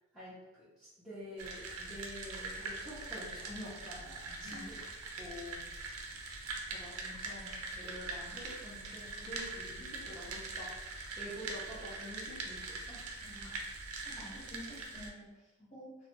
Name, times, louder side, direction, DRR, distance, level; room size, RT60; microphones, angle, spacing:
voice 1, 0.1-4.9 5.2-5.7 6.7-13.0 13.4-13.6 15.6-15.7, left 1 dB, ahead, -14 dB, 0.5 m, -48 dB
sound 1, 1.4-15.1, right 3 dB, 80° right, 0.4 m, -43 dB
voice 2, 14.0-15.9, equal, 30° left, -8 dB, 1.0 m, -50 dB
2.4 x 2.1 x 2.8 m, 1.0 s
head